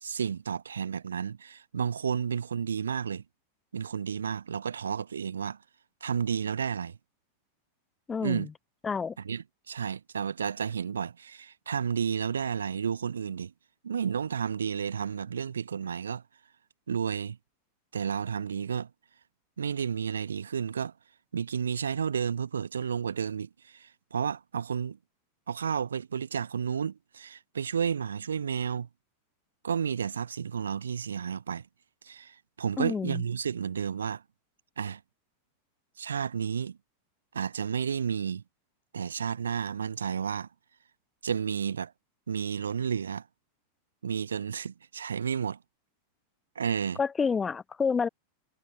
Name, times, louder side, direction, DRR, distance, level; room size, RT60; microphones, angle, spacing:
voice 1, 0.0-3.2 3.7-5.6 6.0-7.0 8.2-8.5 9.2-13.5 13.8-16.2 16.9-17.4 17.9-18.9 19.6-20.9 21.3-25.0 25.5-28.9 29.6-31.6 32.0-34.2 34.8-35.0 36.0-36.8 37.3-38.4 38.9-40.5 41.2-41.9 42.3-43.2 44.0-45.6 46.6-47.0, right 7 dB, 70° right, 2.3 m, -31 dB
voice 2, 8.1-8.5 8.8-9.2 32.8-33.2 47.0-48.1, left 5 dB, 15° left, 4.1 m, -29 dB
figure-of-eight pair, 90°, 0 cm